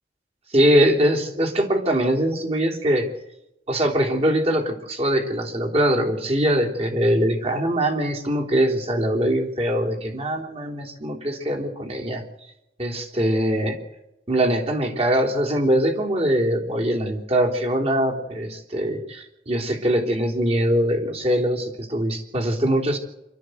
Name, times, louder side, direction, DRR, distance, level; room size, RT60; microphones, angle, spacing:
voice 1, 0.5-3.0 3.7-12.2 12.8-13.8 14.3-23.0, equal, 35° right, 1 dB, 3.4 m, -22 dB
26.0 x 13.0 x 7.9 m, 0.88 s
head